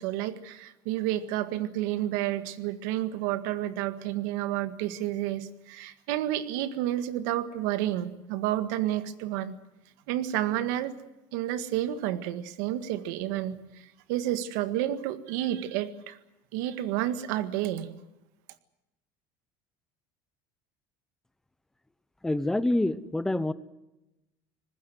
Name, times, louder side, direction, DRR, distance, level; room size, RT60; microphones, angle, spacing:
voice 1, 0.0-9.6 10.1-10.9 11.3-16.2 16.5-17.9, right 13 dB, 90° right, 12 dB, 1.7 m, -30 dB
voice 2, 22.2-23.5, left 1 dB, 5° left, 15 dB, 0.7 m, -26 dB
24.5 x 20.0 x 7.7 m, 0.97 s
cardioid pair, 165°, 10 cm